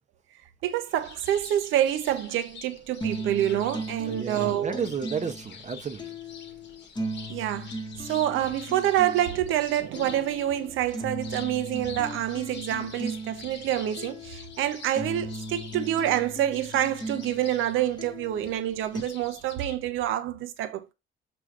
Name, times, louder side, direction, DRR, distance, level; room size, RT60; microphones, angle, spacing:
voice 1, 0.6-4.8 7.3-7.7 8.0-20.9, right 12 dB, 85° right, 0.6 m, -27 dB
sound 1, 0.9-19.8, left 5 dB, 65° left, 1.0 m, -47 dB
sound 2, 3.0-19.0, equal, 20° left, 0.9 m, -38 dB
voice 2, 4.1-6.1, right 6 dB, 35° right, 0.7 m, -32 dB
6.0 x 3.1 x 2.4 m
cardioid pair, 90°, 20 cm